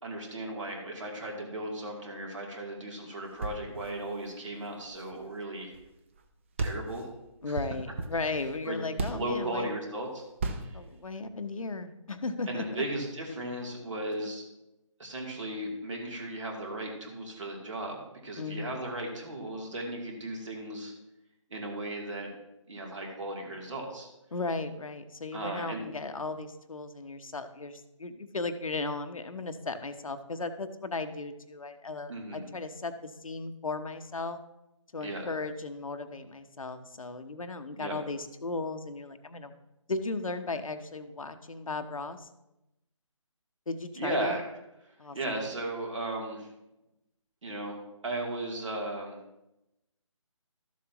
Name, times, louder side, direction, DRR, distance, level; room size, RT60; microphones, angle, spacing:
voice 1, 0.0-5.7 6.6-7.1 7.5-7.6 8.6-8.8 9.1-10.2 10.6-10.8 12.5-14.4 15.0-20.9 21.5-22.3 22.7-24.1 25.3-25.8 32.1-32.4 35.0-35.3 37.7-38.0 43.9-44.4 45.1-46.5 47.4-49.2, right 1 dB, 65° right, 0 dB, 2.9 m, -36 dB
sound 1, 3.3-5.9 6.1-6.2 6.6-9.4 10.4-10.9, right 3 dB, 25° right, 0.5 m, -36 dB
voice 2, 7.4-9.7 10.7-12.8 18.4-18.7 24.3-34.4 34.9-39.5 39.9-42.3 43.7-44.4 45.0-45.4, left 3 dB, 90° left, 8 dB, 1.0 m, -36 dB
13.0 x 7.3 x 3.0 m, 0.92 s
figure-of-eight pair, 160°, 17 cm